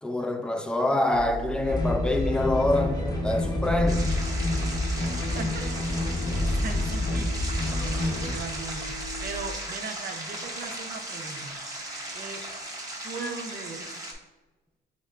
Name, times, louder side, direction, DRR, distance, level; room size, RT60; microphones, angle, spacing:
voice 1, 0.0-4.2, left 1 dB, 5° left, 0.4 m, -26 dB
sound 1, 1.1-9.5, equal, 85° left, 0.4 m, -38 dB
sound 2, 1.7-8.4, left 1 dB, 20° left, 0.8 m, -28 dB
sound 3, 3.9-14.1, right 1 dB, 20° right, 0.8 m, -37 dB
voice 2, 5.3-5.7 6.1-7.4 7.8-11.9 12.1-12.4 13.0-14.1, right 4 dB, 50° right, 0.6 m, -39 dB
4.7 x 2.1 x 3.2 m
cardioid pair, 90°, 20 cm